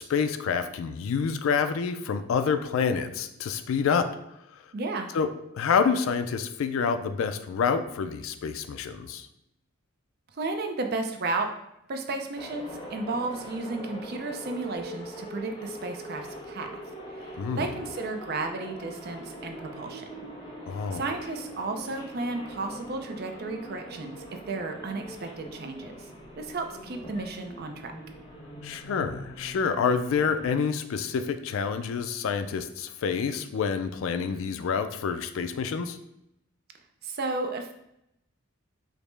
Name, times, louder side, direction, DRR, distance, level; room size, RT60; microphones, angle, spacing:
voice 1, 0.0-4.1 5.1-5.3 5.5-9.3 17.4-17.7 20.7-21.0 28.6-36.0, left 6 dB, 70° left, 9 dB, 0.3 m, -27 dB
voice 2, 4.7-5.1 10.3-11.5 11.9-16.8 17.1-20.1 20.9-26.1 26.4-27.9 37.0-37.7, right 3 dB, 45° right, 5 dB, 0.4 m, -33 dB
sound 1, 12.3-30.5, equal, 25° left, 0.6 m, -42 dB
5.0 x 2.1 x 3.1 m, 0.80 s
head